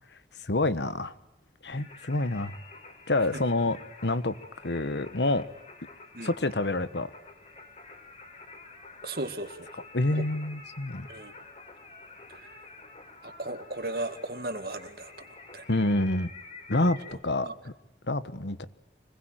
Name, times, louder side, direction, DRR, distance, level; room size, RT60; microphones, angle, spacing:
voice 1, 0.4-1.1 1.6-2.5 3.1-4.4 4.6-5.4 6.2-7.1 9.9-11.1 15.7-16.3 16.7-17.7 18.1-18.6, left 2 dB, 80° left, 1.4 m, -27 dB
Singing, 1.7-17.1, left 3 dB, 40° left, 4.8 m, -49 dB
voice 2, 9.0-9.7 10.1-10.2 11.1-11.3 12.3-12.6 13.2-15.3 15.5-15.7 16.8-17.5, right 2 dB, 55° right, 2.2 m, -37 dB
25.5 x 21.0 x 9.1 m
head